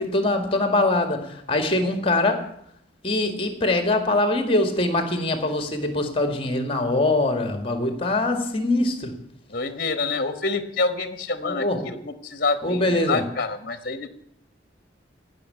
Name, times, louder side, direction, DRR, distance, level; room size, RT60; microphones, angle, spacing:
voice 1, 0.0-2.5 3.0-9.1 11.4-11.8 12.6-13.3, left 2 dB, 30° left, 1.9 m, -23 dB
voice 2, 9.5-14.1, left 3 dB, 50° left, 1.2 m, -27 dB
17.0 x 6.5 x 9.7 m
head